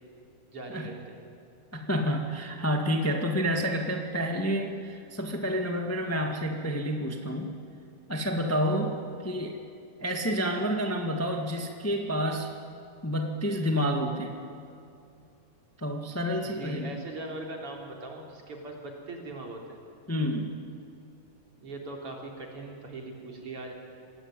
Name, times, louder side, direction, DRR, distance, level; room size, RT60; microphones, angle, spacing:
voice 1, 0.5-1.2 16.4-19.8 21.6-23.7, right 2 dB, 40° right, 0 dB, 4.4 m, -40 dB
voice 2, 1.7-7.5 8.1-9.0 9.2-9.6 10.0-12.5 13.0-14.4 15.8-16.9 20.1-20.5, equal, 20° left, 3 dB, 0.4 m, -29 dB
26.5 x 20.0 x 9.1 m, 2.6 s
omnidirectional pair, 3.8 m